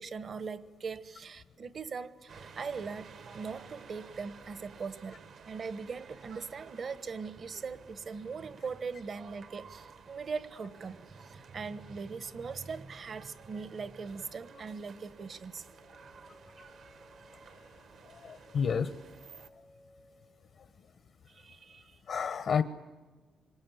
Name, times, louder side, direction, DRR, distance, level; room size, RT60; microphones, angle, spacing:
voice 1, 0.0-5.2 5.5-15.6 21.3-22.0, right 5 dB, 55° right, 13 dB, 1.2 m, -40 dB
sound 1, 2.3-19.5, right 5 dB, 70° right, 1.6 m, -54 dB
sound 2, 15.5-20.4, left 1 dB, 90° left, 2.1 m, -61 dB
voice 2, 18.1-18.9 22.1-22.6, left 6 dB, 65° left, 11 dB, 0.9 m, -30 dB
26.0 x 22.5 x 9.2 m, 1.4 s
cardioid pair, 80°, 0 cm